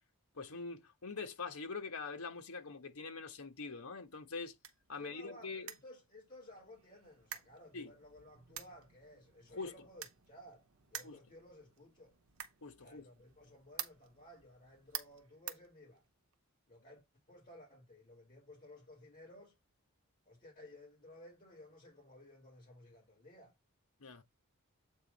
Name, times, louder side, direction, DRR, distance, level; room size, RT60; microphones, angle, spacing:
voice 1, 0.3-4.5 4.9-5.7 7.7-7.9 9.5-9.9 11.0-11.2 12.6-13.1 24.0-24.2, left 4 dB, 80° left, 1.3 m, -44 dB
sound 1, 4.1-16.4, right 10 dB, 65° right, 0.9 m, -51 dB
voice 2, 5.0-12.1 12.8-16.0 16.7-19.5 20.3-23.5, left 1 dB, 35° left, 2.7 m, -56 dB
8.0 x 3.0 x 5.3 m
head